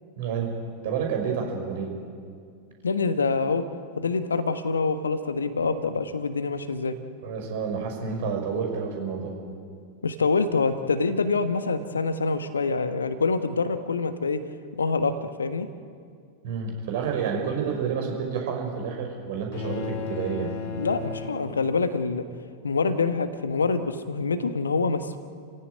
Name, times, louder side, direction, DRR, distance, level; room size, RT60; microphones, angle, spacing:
voice 1, 0.2-0.5 0.8-1.9 7.2-9.4 16.4-20.5, right 6 dB, 55° right, 2 dB, 5.6 m, -29 dB
voice 2, 2.8-3.6 4.0-6.9 10.0-14.4 14.8-15.7 20.8-22.2 22.6-25.3, left 4 dB, 75° left, 10 dB, 1.4 m, -26 dB
sound 1, 19.5-22.1, left 5 dB, 50° left, 2.2 m, -35 dB
29.0 x 16.5 x 9.4 m, 2.3 s
figure-of-eight pair, 90°, 0 cm